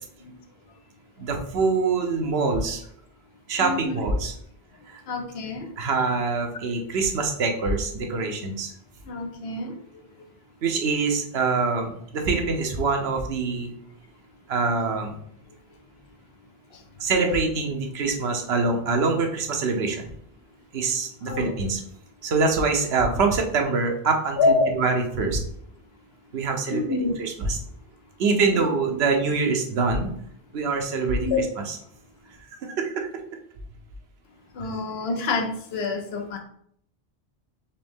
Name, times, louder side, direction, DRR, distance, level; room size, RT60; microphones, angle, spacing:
voice 1, 1.2-2.8 3.5-4.3 4.9-5.0 5.8-8.7 10.6-13.7 14.5-15.2 17.0-20.1 20.7-21.8 22.2-25.4 26.3-26.8 27.2-27.6 28.2-30.1 30.5-31.8 32.6-33.1, right 4 dB, 80° right, 3 dB, 1.0 m, -24 dB
voice 2, 3.6-4.0 5.1-5.8 9.0-9.8 10.2-10.3 16.7-16.8 17.3-17.4 21.3-21.7 24.4-24.8 26.7-27.2 28.6-28.7 31.2-31.5 34.5-36.4, left 3 dB, 75° left, 5 dB, 0.9 m, -27 dB
4.2 x 3.0 x 3.5 m, 0.65 s
omnidirectional pair, 1.1 m